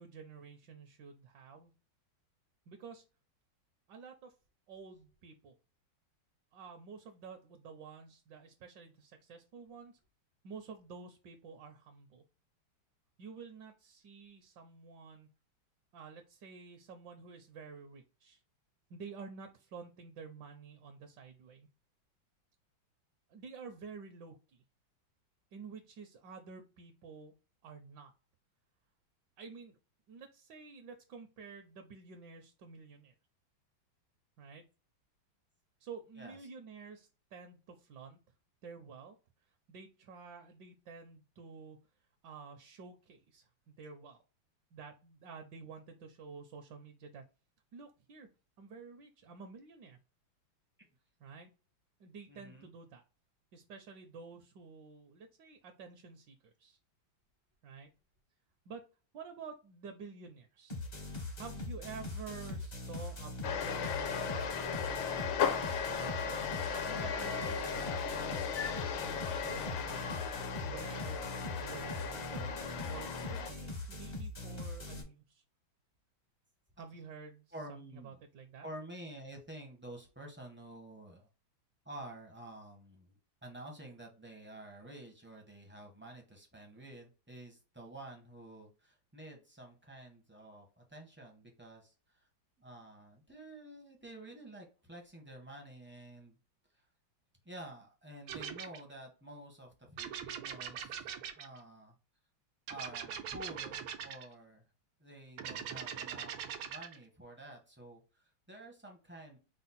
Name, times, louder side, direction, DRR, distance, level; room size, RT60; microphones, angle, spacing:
voice 1, 0.0-1.7 2.7-3.0 3.9-4.3 4.7-5.5 6.5-9.9 10.4-12.2 13.2-15.3 15.9-18.4 18.9-21.7 23.3-24.6 25.5-27.3 27.6-28.1 29.4-29.8 30.1-33.1 34.4-34.6 35.8-38.2 38.6-39.2 39.7-41.8 42.2-44.2 44.7-47.2 47.7-48.3 48.6-50.0 51.2-51.5 52.0-53.0 53.5-56.8 57.6-57.9 58.7-58.8 59.1-60.8 61.4-65.2 65.8-68.4 69.0-70.2 70.6-72.6 72.9-75.4 76.8-78.7, right 5 dB, 70° right, 5 dB, 1.2 m, -50 dB
voice 2, 52.3-52.7 77.5-78.2 78.6-81.3 81.8-92.2 92.6-96.4 97.4-101.1 101.3-101.9 102.7-104.6 105.0-106.3 106.7-109.4, right 1 dB, 15° right, 1 dB, 0.4 m, -50 dB
sound 1, 60.7-75.0, left 2 dB, 40° left, 0.5 m, -42 dB
sound 2, 63.4-73.5, left 7 dB, 75° left, 1.5 m, -36 dB
sound 3, 98.3-98.8 100.0-101.6 102.7-104.3 105.4-107.0, right 8 dB, 85° right, 1.5 m, -42 dB
5.0 x 2.0 x 4.1 m, 0.32 s
omnidirectional pair, 2.1 m